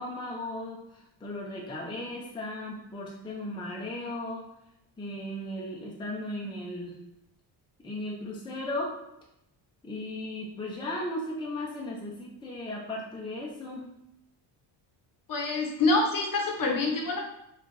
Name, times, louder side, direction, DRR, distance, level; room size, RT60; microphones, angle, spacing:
voice 1, 0.0-4.5 5.0-6.9 7.8-8.9 9.8-13.9, left 1 dB, 10° left, -3 dB, 0.6 m, -36 dB
voice 2, 15.3-17.2, left 3 dB, 45° left, 0 dB, 0.9 m, -26 dB
4.1 x 2.5 x 3.2 m, 0.82 s
cardioid pair, 125°, 46 cm